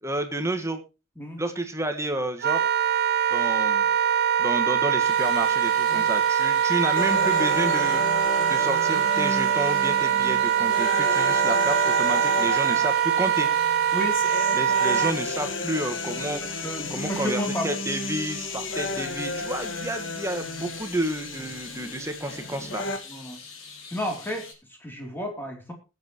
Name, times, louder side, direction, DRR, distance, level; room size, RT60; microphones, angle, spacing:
voice 1, 0.0-0.8 1.4-2.6 3.3-3.9 4.4-8.1 8.5-13.5 14.5-16.6 16.9-22.8, right 1 dB, 15° right, 7 dB, 1.6 m, -30 dB
Wind instrument woodwind instrument, 2.4-15.2, right 9 dB, 50° right, 0.7 m, -23 dB
sound 1, 5.0-24.5, left 4 dB, 80° left, 4.4 m, -44 dB
sound 2, 7.0-23.0, left 3 dB, 60° left, 1.8 m, -32 dB
voice 2, 13.9-14.2 16.3-17.7 23.1-23.4 23.9-25.7, equal, 10° left, 2 dB, 3.1 m, -32 dB
20.0 x 8.0 x 3.0 m, 0.29 s
head